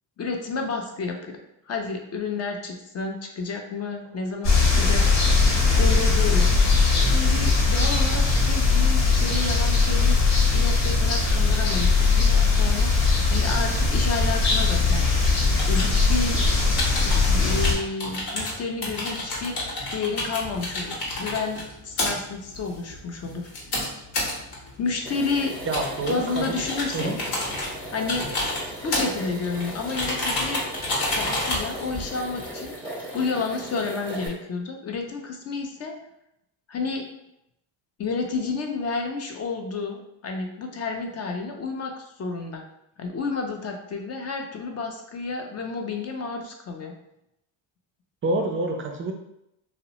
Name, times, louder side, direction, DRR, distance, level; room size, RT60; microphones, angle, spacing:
voice 1, 0.2-1.4 1.7-5.3 5.8-6.5 7.0-10.2 10.5-15.1 15.7-16.4 17.0-23.4 24.8-25.5 26.1-27.1 27.9-28.3 28.8-30.7 31.1-32.7 33.1-36.0 36.7-37.0 38.0-42.6 43.0-46.9, left 4 dB, 35° left, 3 dB, 0.4 m, -30 dB
sound 1, 4.4-17.7, left 4 dB, 80° left, 1.0 m, -20 dB
sound 2, 15.2-32.7, left 1 dB, 60° left, 1.0 m, -31 dB
sound 3, 25.0-34.3, equal, 5° left, 0.8 m, -38 dB
voice 2, 25.7-26.6 26.9-27.2 48.2-49.1, right 2 dB, 30° right, 3 dB, 0.4 m, -27 dB
2.7 x 2.0 x 2.8 m, 0.81 s
cardioid pair, 100°, 47 cm